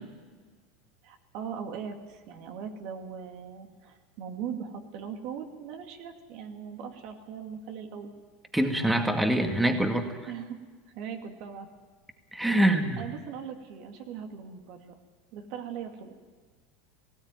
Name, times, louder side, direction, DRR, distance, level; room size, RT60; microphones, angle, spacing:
voice 1, 1.0-8.1 10.3-10.6 10.9-11.7 13.0-14.9 15.3-16.1, right 7 dB, 60° right, 4 dB, 2.5 m, -39 dB
voice 2, 8.5-10.0 12.3-13.0, right 1 dB, 5° right, 5 dB, 2.1 m, -24 dB
18.5 x 16.0 x 9.3 m, 1.5 s
hypercardioid pair, 95°, 0 cm